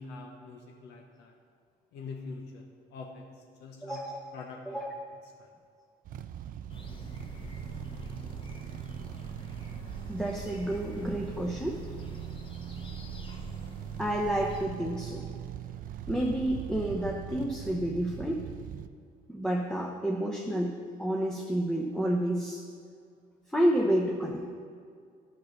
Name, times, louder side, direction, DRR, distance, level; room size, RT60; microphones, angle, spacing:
voice 1, 0.0-1.3 1.9-4.0 4.3-4.8 5.4-5.5, left 4 dB, 85° left, 2 dB, 0.9 m, -44 dB
voice 2, 3.8-4.2 4.7-4.9 10.1-11.9 14.0-15.2 16.1-18.5 19.3-22.6 23.5-24.5, right 1 dB, 5° left, -1 dB, 0.8 m, -30 dB
sound 1, 6.0-18.9, right 10 dB, 55° right, 0.4 m, -41 dB
sound 2, 6.7-14.6, equal, 30° left, 1.5 m, -46 dB
9.4 x 5.9 x 6.5 m, 2.2 s
cardioid pair, 110°, 17 cm